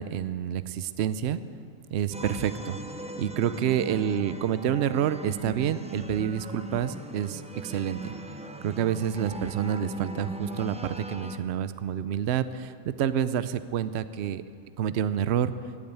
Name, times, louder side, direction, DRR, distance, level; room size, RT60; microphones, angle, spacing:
voice 1, 0.0-1.4 1.9-2.8 3.2-8.1 8.6-14.4 14.8-15.5, right 9 dB, 60° right, 14 dB, 0.8 m, -28 dB
sound 1, 2.1-11.4, right 1 dB, 10° right, 0.3 m, -39 dB
16.5 x 8.8 x 9.0 m, 2.1 s
omnidirectional pair, 1.4 m